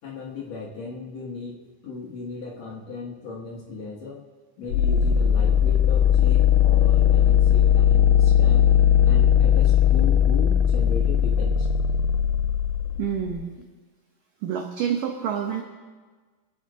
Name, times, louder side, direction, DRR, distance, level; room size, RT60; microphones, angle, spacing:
voice 1, 0.0-4.2 4.6-8.8 9.0-11.7, left 4 dB, 70° left, -4 dB, 1.6 m, -36 dB
sound 1, 4.7-13.4, left 9 dB, 85° left, 3.0 m, -18 dB
voice 2, 13.0-13.5 14.4-15.6, right 8 dB, 85° right, 2 dB, 1.9 m, -27 dB
26.0 x 8.8 x 3.7 m, 1.4 s
omnidirectional pair, 5.3 m